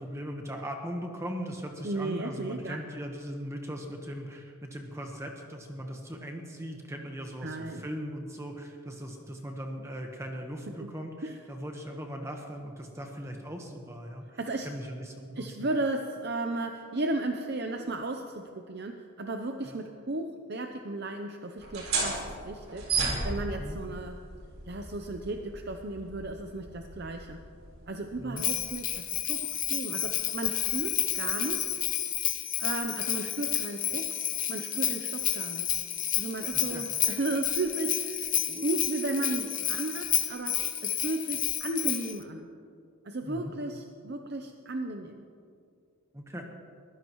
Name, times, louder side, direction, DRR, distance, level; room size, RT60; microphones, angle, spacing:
voice 1, 0.0-15.7 19.6-19.8 23.6-23.8 28.2-28.4 36.7-36.9 43.2-43.5 46.1-46.5, equal, 15° right, 2 dB, 1.2 m, -39 dB
voice 2, 1.8-2.8 7.4-7.9 10.8-10.9 11.2-11.4 14.4-14.7 15.4-22.9 23.2-24.2 24.7-27.4 27.9-31.7 32.6-34.1 34.5-35.7 36.2-42.5 43.0-45.2, right 2 dB, 50° right, 4 dB, 0.7 m, -34 dB
sound 1, 21.6-28.9, right 4 dB, 75° right, 4.3 m, -35 dB
Bell, 28.4-42.2, left 11 dB, 35° left, 0.9 m, -30 dB
23.0 x 15.5 x 3.1 m, 2.3 s
head